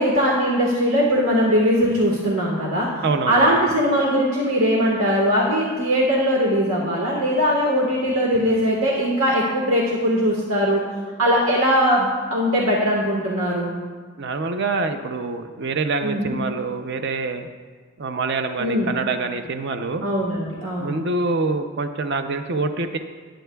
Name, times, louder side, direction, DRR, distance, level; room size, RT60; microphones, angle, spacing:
voice 1, 0.0-2.9 3.3-10.8 11.2-13.7 16.0-16.4 18.6-18.9 20.0-21.0, equal, 80° right, -3 dB, 1.5 m, -20 dB
voice 2, 3.0-3.4 14.2-17.5 18.0-20.1 20.8-23.0, right 3 dB, 55° right, 7 dB, 0.6 m, -25 dB
20.0 x 9.0 x 2.3 m, 1.5 s
head